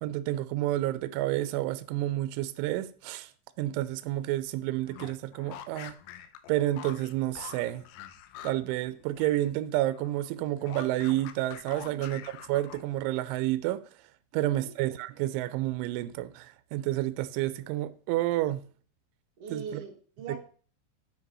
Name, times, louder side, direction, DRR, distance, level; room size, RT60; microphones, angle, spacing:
voice 1, 0.0-3.3 3.6-5.9 6.5-7.9 8.4-13.8 14.3-18.6 19.5-19.8 20.3-20.4, right 15 dB, 80° right, 2.9 m, -30 dB
sound 1, 4.8-9.5 9.8-13.1, left 11 dB, 80° left, 2.9 m, -46 dB
voice 2, 14.3-14.7 19.4-20.4, right 6 dB, 60° right, 1.6 m, -41 dB
9.0 x 5.0 x 5.4 m
omnidirectional pair, 5.9 m